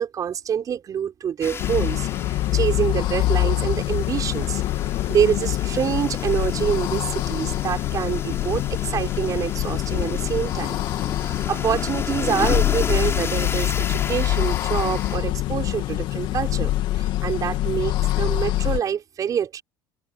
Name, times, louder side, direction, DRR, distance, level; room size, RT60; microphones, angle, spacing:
voice 1, 0.0-4.6 5.1-10.8 11.2-19.6, right 8 dB, 45° right, 6.5 m, -26 dB
sound 1, 1.4-15.2, left 5 dB, 30° left, 3.5 m, -33 dB
sound 2, 1.6-18.8, left 15 dB, 65° left, 2.3 m, -25 dB
open air
supercardioid pair, 95°, 9 cm